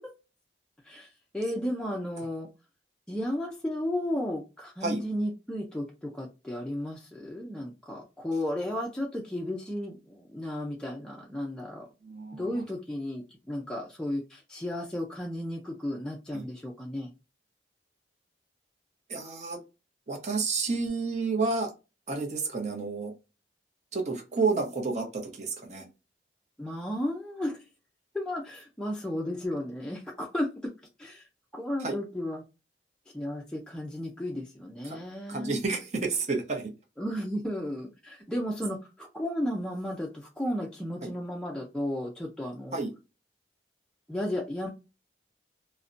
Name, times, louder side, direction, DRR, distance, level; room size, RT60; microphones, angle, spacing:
voice 1, 1.3-2.5 3.1-11.9 12.3-17.1 26.6-27.6 28.1-30.7 31.0-31.2 31.5-32.4 33.1-35.5 37.0-42.8 44.1-44.7, left 1 dB, 5° left, -2 dB, 0.3 m, -34 dB
voice 2, 12.0-12.6 16.3-16.5 19.1-19.6 20.1-21.7 22.1-23.1 23.9-25.1 25.4-25.8 31.8-32.0 34.8-35.0 35.3-36.7 42.7-42.9, right 4 dB, 40° right, 3 dB, 0.6 m, -30 dB
2.6 x 2.1 x 2.4 m, 0.29 s
head